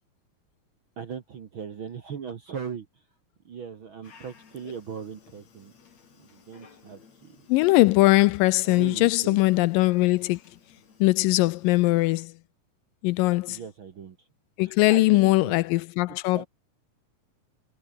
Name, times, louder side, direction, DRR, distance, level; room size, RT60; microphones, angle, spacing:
voice 1, 1.0-3.0 3.4-5.7 6.2-7.5 8.6-9.4 10.0-10.1 13.5-14.3 14.6-15.6 16.1-16.5, right 7 dB, 50° right, 1.5 m, -39 dB
Dog, 4.0-12.3, left 5 dB, 50° left, 4.7 m, -56 dB
voice 2, 7.5-10.4 11.0-12.3 13.0-13.6 14.6-16.5, left 20 dB, 80° left, 2.1 m, -21 dB
omnidirectional pair, 4.1 m